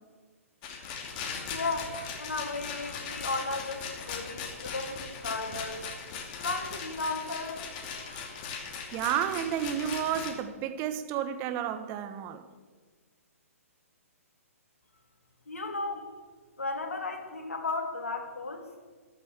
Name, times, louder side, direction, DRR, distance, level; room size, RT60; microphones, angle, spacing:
Rattle, 0.6-10.3, left 6 dB, 35° left, 2.6 m, -39 dB
voice 1, 1.5-5.8 6.4-8.5 15.5-16.1 16.6-18.7, left 3 dB, 70° left, 3.2 m, -35 dB
voice 2, 8.9-12.5, right 9 dB, 30° right, 1.4 m, -31 dB
14.0 x 12.5 x 7.2 m
figure-of-eight pair, 125°, 8 cm